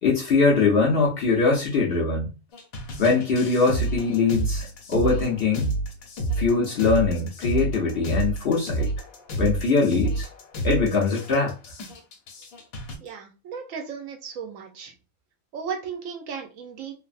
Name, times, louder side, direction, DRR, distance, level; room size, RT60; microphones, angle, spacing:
voice 1, 0.0-2.4 3.0-5.7 6.4-8.9 9.4-10.3 10.6-11.5, left 4 dB, 55° left, 0.7 m, -22 dB
sound 1, 2.5-13.0, right 2 dB, 85° left, 1.2 m, -29 dB
voice 2, 13.0-14.9 15.5-16.9, right 6 dB, 75° right, 0.9 m, -35 dB
3.2 x 2.0 x 2.4 m
omnidirectional pair, 1.4 m